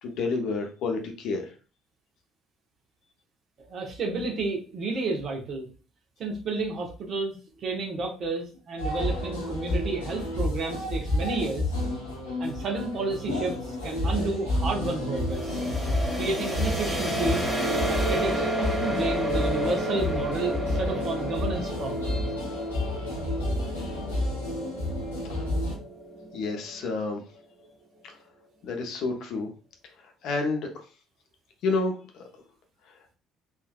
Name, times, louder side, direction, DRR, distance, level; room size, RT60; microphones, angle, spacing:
voice 1, 0.0-1.5 25.3-25.4 26.3-27.2 28.0-28.1 28.6-29.5 30.0-30.7 31.6-32.3, left 3 dB, 60° left, 3 dB, 0.7 m, -29 dB
voice 2, 3.7-5.7 6.2-11.7 12.4-15.6 16.1-17.5 17.9-22.3, right 3 dB, 50° right, 1 dB, 1.0 m, -31 dB
sound 1, 8.8-25.7, left 1 dB, 90° left, 0.9 m, -30 dB
sound 2, 15.3-27.0, equal, ahead, 1.5 m, -31 dB
3.6 x 2.6 x 2.2 m, 0.35 s
figure-of-eight pair, 55°, 0 cm